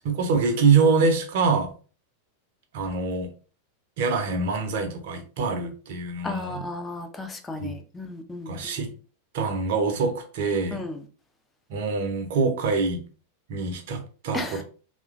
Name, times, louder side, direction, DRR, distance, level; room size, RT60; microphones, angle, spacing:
voice 1, 0.0-1.7 2.7-3.3 4.0-6.6 7.6-7.7 8.5-8.9 9.3-10.8 11.7-13.0 13.5-14.6, right 4 dB, 50° right, 0.6 m, -24 dB
voice 2, 6.2-8.6 10.7-11.0 14.3-14.6, left 2 dB, 15° left, 0.5 m, -34 dB
3.0 x 2.2 x 2.4 m
figure-of-eight pair, 90°, 0 cm